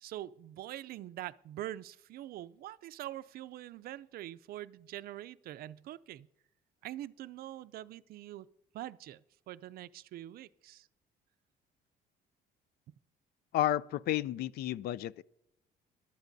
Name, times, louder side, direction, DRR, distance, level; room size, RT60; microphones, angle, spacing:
voice 1, 0.0-6.3 6.8-8.5 8.7-9.2 9.5-10.9, right 13 dB, 60° right, 0.4 m, -44 dB
voice 2, 13.5-15.2, left 12 dB, 65° left, 0.4 m, -31 dB
20.5 x 12.0 x 2.6 m
cardioid pair, 110°, 17 cm